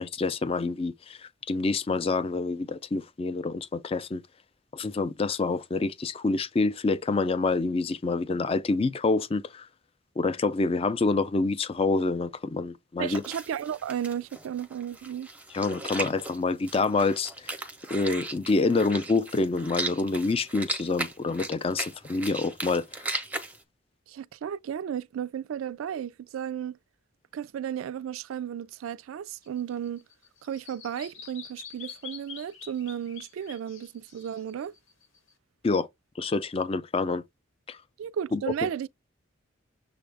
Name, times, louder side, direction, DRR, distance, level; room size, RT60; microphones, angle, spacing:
voice 1, 0.0-4.2 4.7-9.7 10.2-13.2 15.5-17.5 17.9-22.9 35.6-35.9 36.2-37.2 37.7-37.8 38.3-38.7, left 3 dB, 30° left, 0.3 m, -27 dB
voice 2, 13.0-15.3 24.1-26.8 27.3-30.0 30.4-34.7 38.0-38.9, right 9 dB, 80° right, 0.3 m, -34 dB
sound 1, 13.1-23.6, right 2 dB, 5° right, 0.6 m, -37 dB
Bird vocalization bird call bird song, 29.4-35.3, left 7 dB, 75° left, 1.0 m, -46 dB
6.8 x 2.4 x 3.3 m
head